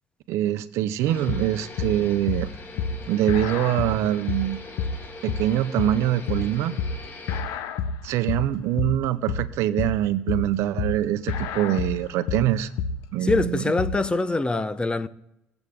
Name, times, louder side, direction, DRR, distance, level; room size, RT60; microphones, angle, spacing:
voice 1, 0.3-2.5 3.1-4.6 5.2-6.8 8.0-12.7 13.1-13.6, right 12 dB, 80° right, 0.7 m, -24 dB
sound 1, 1.0-7.4, left 3 dB, 50° left, 3.0 m, -42 dB
sound 2, 1.3-14.1, left 5 dB, 85° left, 0.9 m, -29 dB
voice 2, 13.2-15.1, left 2 dB, 20° left, 0.9 m, -24 dB
22.5 x 8.0 x 3.6 m
supercardioid pair, 70°, 5 cm